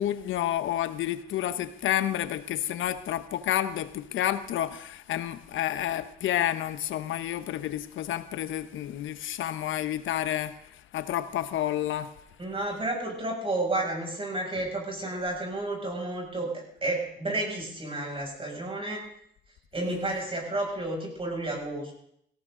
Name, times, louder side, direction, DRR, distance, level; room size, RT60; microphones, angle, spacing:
voice 1, 0.0-12.1 19.9-20.1, left 12 dB, 80° left, 1.1 m, -30 dB
voice 2, 12.4-19.0 19.7-21.9, right 2 dB, 25° right, 6.9 m, -31 dB
17.5 x 17.5 x 3.9 m
cardioid pair, 90°, 20 cm